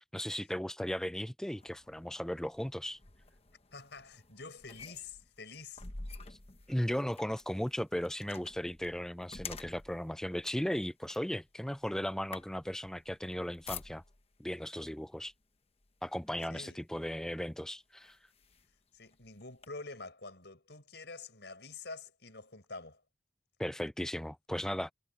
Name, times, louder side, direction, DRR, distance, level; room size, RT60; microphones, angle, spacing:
voice 1, 0.1-3.0 6.3-6.4 6.7-14.0 14.4-15.3 16.0-18.2 23.6-24.9, equal, 5° left, 0.3 m, -36 dB
sound 1, 1.5-14.4 15.2-15.4 15.8-16.8 17.5-17.6 18.0-19.7, left 4 dB, 30° left, 1.2 m, -50 dB
voice 2, 3.7-5.8 16.5-16.8 18.9-23.0, left 3 dB, 60° left, 6.0 m, -47 dB
head